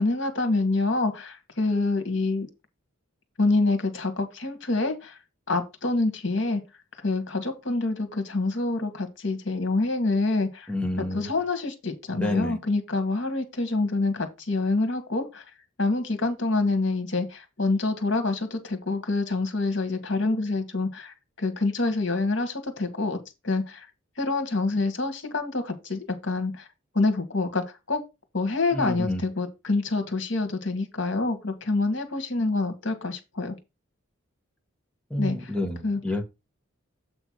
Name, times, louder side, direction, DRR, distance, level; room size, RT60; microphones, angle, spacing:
voice 1, 0.0-2.5 3.4-5.2 5.5-6.6 7.0-10.7 11.1-15.4 15.8-23.2 23.4-23.9 24.2-26.7 26.9-28.0 28.3-33.6 35.2-35.5 35.8-36.0, left 3 dB, 60° left, 1.8 m, -26 dB
voice 2, 10.7-11.3 12.1-12.6 28.7-29.2 35.1-36.2, left 1 dB, 5° left, 1.2 m, -29 dB
8.0 x 3.3 x 6.2 m
head